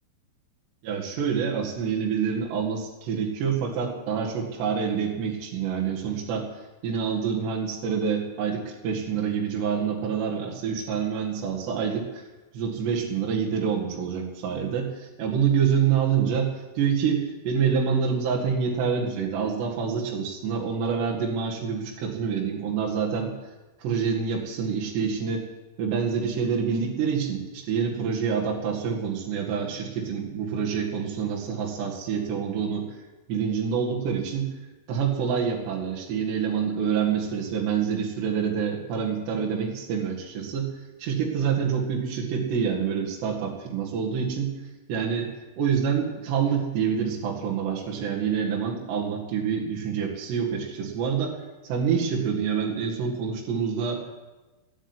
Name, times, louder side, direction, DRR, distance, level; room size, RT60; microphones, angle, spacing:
voice 1, 0.8-12.2 12.5-23.4 23.8-25.5 25.8-32.9 33.3-34.5 34.9-40.7 41.0-44.5 44.9-51.4 51.6-54.2, right 7 dB, 70° right, -1 dB, 4.0 m, -27 dB
15.0 x 9.7 x 9.7 m, 1.1 s
omnidirectional pair, 5.3 m